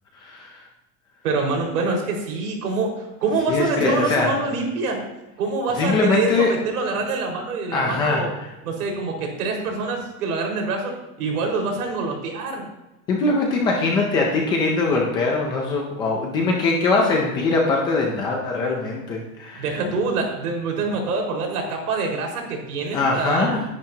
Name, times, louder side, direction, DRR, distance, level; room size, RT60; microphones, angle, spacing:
voice 1, 0.2-0.6 3.5-4.3 5.8-6.5 7.7-8.5 13.1-19.7 22.9-23.6, left 3 dB, 10° left, 0 dB, 0.4 m, -22 dB
voice 2, 1.2-5.0 5.4-8.3 8.6-12.7 19.5-23.5, right 3 dB, 85° right, 1 dB, 4.9 m, -25 dB
19.0 x 10.5 x 2.8 m, 0.97 s
supercardioid pair, 175°, 44 cm